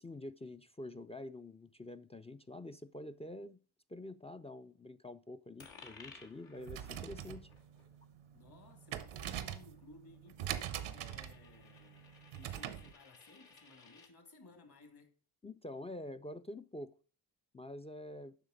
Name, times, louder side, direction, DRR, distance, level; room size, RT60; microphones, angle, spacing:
voice 1, 0.0-3.6 3.9-7.5 15.4-16.9 17.5-18.4, left 1 dB, 15° left, 0.4 m, -47 dB
Coin (dropping), 5.6-14.1, left 4 dB, 75° left, 1.7 m, -60 dB
sound 1, 6.6-12.9, right 10 dB, 90° right, 0.8 m, -43 dB
voice 2, 8.3-10.5 10.8-15.1, left 2 dB, 55° left, 2.5 m, -59 dB
8.0 x 5.7 x 5.1 m
cardioid pair, 55°, 46 cm